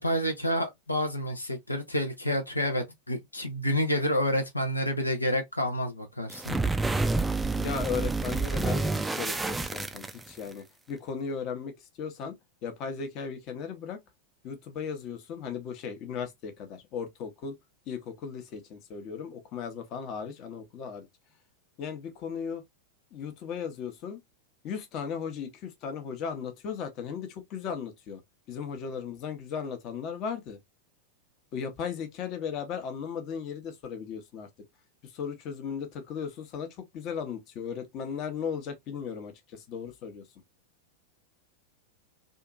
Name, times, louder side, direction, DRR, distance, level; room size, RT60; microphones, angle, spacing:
voice 1, 0.0-6.6, equal, 85° left, 0.6 m, -29 dB
sound 1, 6.3-10.5, right 3 dB, 10° right, 0.3 m, -28 dB
voice 2, 7.6-14.0 14.4-17.6 17.9-21.1 21.8-22.6 23.1-24.2 24.6-28.2 28.5-30.6 31.5-34.5 35.0-40.3, left 6 dB, 40° left, 0.7 m, -36 dB
2.7 x 2.4 x 2.3 m
figure-of-eight pair, 90°, 0 cm